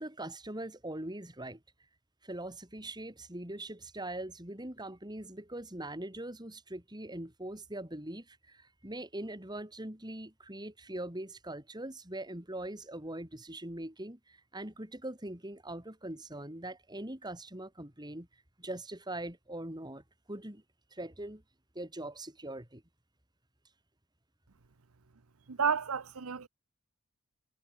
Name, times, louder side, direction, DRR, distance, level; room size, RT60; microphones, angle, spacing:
voice 1, 0.0-1.6 2.2-18.3 18.6-20.6 20.9-21.4 21.8-22.8, right 1 dB, 20° right, 3.8 m, -42 dB
voice 2, 25.5-26.5, right 6 dB, 85° right, 0.8 m, -31 dB
head